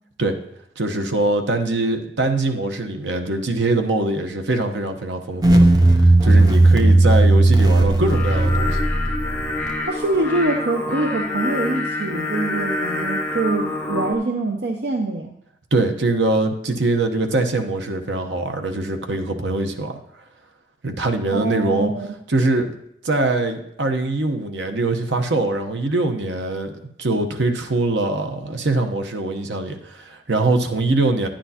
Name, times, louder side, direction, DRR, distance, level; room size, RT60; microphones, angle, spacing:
voice 1, 0.8-5.7 5.9-8.8 15.7-20.0 20.8-21.9 22.3-22.8 23.0-26.7 27.0-31.3, right 2 dB, 80° right, 5 dB, 0.9 m, -22 dB
sound 1, 5.4-9.7, right 2 dB, 20° right, 0.6 m, -15 dB
Singing, 8.0-14.1, left 2 dB, 10° left, 0.8 m, -26 dB
voice 2, 9.8-15.3 21.3-22.1, right 2 dB, 65° right, 3 dB, 0.6 m, -24 dB
10.0 x 10.0 x 2.8 m, 0.74 s
head